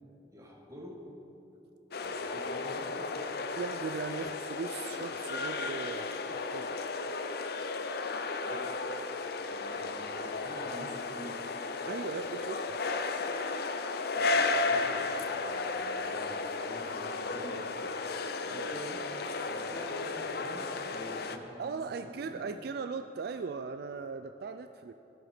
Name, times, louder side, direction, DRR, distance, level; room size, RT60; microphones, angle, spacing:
voice 1, 0.3-1.1 2.0-3.1 8.5-8.7 9.1-9.2 9.5-11.4 14.1-18.0 18.4-19.1 19.5-22.5, equal, 20° right, -1 dB, 1.7 m, -48 dB
sound 1, 1.9-21.4, left 3 dB, 60° left, 0.6 m, -34 dB
voice 2, 3.6-6.7 11.9-12.6 18.5-18.7 21.6-24.9, right 5 dB, 60° right, 9 dB, 0.3 m, -38 dB
16.5 x 7.7 x 5.0 m, 2.9 s
head